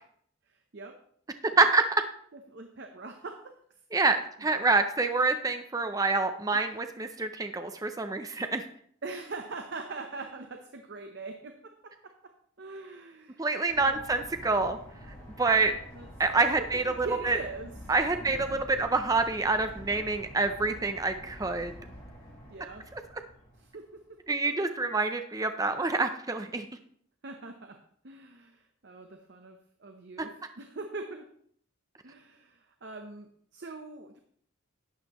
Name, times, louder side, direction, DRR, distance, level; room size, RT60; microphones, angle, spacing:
voice 1, 0.5-1.0 2.3-3.6 4.5-4.8 6.5-6.8 9.0-13.5 13.8-14.0 15.6-16.1 16.3-17.7 18.1-18.8 22.5-22.9 23.6-24.2 27.2-31.3 32.0-34.2, right 3 dB, 55° right, 5 dB, 0.7 m, -43 dB
voice 2, 3.9-8.6 13.4-14.8 15.4-15.7 16.2-17.4 17.9-21.7 22.9-23.0 24.3-26.7, right 3 dB, 15° right, 7 dB, 0.5 m, -27 dB
sound 1, 13.7-23.9, equal, 20° left, 4.5 m, -47 dB
11.5 x 8.8 x 3.0 m, 0.63 s
head